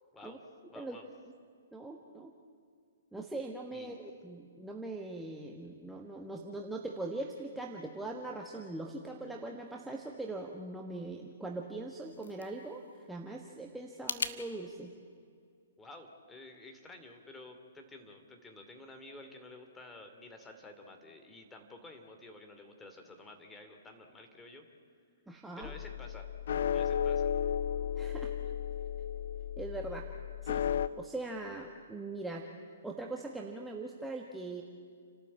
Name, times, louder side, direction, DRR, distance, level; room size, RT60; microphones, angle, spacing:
voice 1, 0.7-1.1 3.7-4.0 15.8-24.7 25.6-26.3 26.7-27.3, left 2 dB, 10° left, 4 dB, 2.7 m, -51 dB
voice 2, 1.7-2.3 3.1-14.9 25.3-25.7 28.0-28.3 29.6-30.1 30.4-30.6 31.0-32.4 32.8-34.6, right 2 dB, 5° right, 1 dB, 1.4 m, -41 dB
sound 1, 11.7-14.4, left 5 dB, 75° left, 1.3 m, -41 dB
sound 2, 25.6-30.9, left 9 dB, 60° left, 0.7 m, -34 dB
29.5 x 12.5 x 8.6 m, 2.2 s
hypercardioid pair, 125°, 0 cm